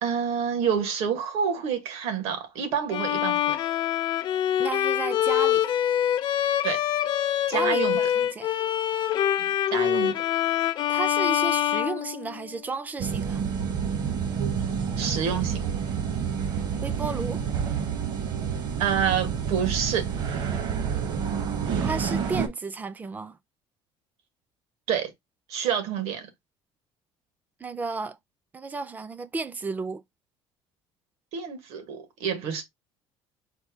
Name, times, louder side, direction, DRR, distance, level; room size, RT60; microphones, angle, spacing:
voice 1, 0.0-3.6 6.6-6.8 7.5-8.0 9.4-10.2 15.0-15.6 18.8-20.1 24.9-25.1 25.5-26.3 31.3-32.6, right 7 dB, 75° right, 1.4 m, -28 dB
Bowed string instrument, 2.9-12.7, left 11 dB, 45° left, 0.5 m, -25 dB
voice 2, 4.6-5.8 7.5-8.6 10.9-13.4 16.8-17.4 21.8-23.4 27.6-28.2 28.5-30.0, right 4 dB, 15° right, 0.4 m, -33 dB
sound 1, 13.0-22.5, right 7 dB, 50° right, 0.9 m, -28 dB
4.3 x 2.2 x 4.4 m
cardioid pair, 155°, 10 cm